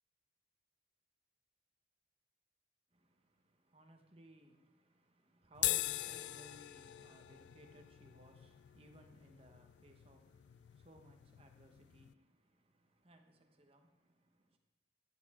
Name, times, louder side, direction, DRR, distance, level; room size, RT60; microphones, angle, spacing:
voice 1, 2.9-14.6, right 1 dB, 30° right, 1.1 m, -62 dB
sound 1, 5.5-12.1, left 15 dB, 75° left, 0.3 m, -42 dB
14.0 x 9.7 x 3.7 m
head